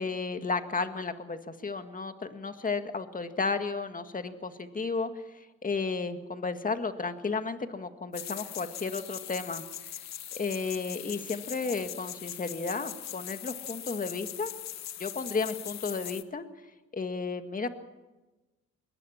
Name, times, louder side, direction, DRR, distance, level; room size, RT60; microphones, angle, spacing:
voice 1, 0.0-9.7 10.3-14.5 15.0-16.4 16.9-17.7, left 4 dB, 25° left, 8 dB, 1.9 m, -33 dB
sound 1, 8.1-16.2, left 10 dB, 60° left, 1.1 m, -41 dB
22.0 x 19.0 x 7.3 m, 1.1 s
cardioid pair, 90°, 30 cm